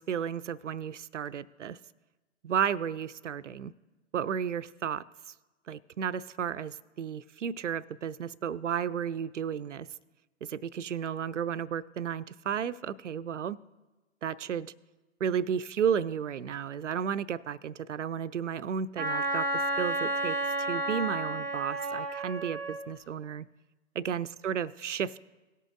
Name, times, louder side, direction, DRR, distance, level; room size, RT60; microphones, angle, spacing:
voice 1, 0.0-1.8 2.4-3.7 4.1-5.0 5.7-9.9 10.4-13.6 14.2-14.7 15.2-23.5 24.0-25.2, right 8 dB, 75° right, 17 dB, 0.5 m, -33 dB
Wind instrument woodwind instrument, 19.0-22.8, right 1 dB, 5° left, 1.5 m, -31 dB
18.0 x 8.2 x 2.5 m, 1.2 s
figure-of-eight pair, 115°, 37 cm